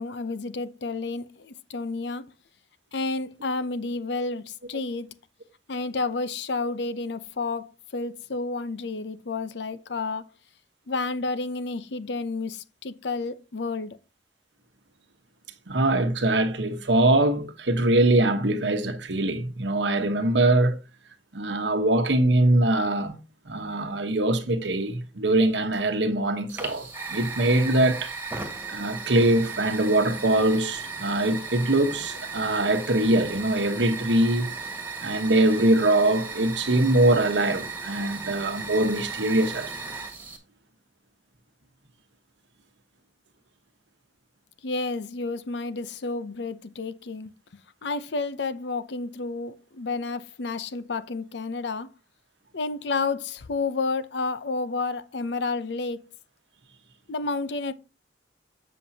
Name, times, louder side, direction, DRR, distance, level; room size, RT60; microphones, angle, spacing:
voice 1, 0.0-2.2 2.9-5.1 5.7-10.2 10.9-14.0 44.6-47.3 47.8-51.9 52.5-56.1 57.1-57.7, left 3 dB, 70° left, 0.7 m, -30 dB
voice 2, 15.7-20.8 21.3-23.1 23.5-28.1 28.7-34.5 35.0-39.7, right 1 dB, 85° right, 1.2 m, -23 dB
Fire, 26.5-40.4, right 4 dB, 10° right, 1.6 m, -36 dB
7.7 x 7.1 x 2.8 m
head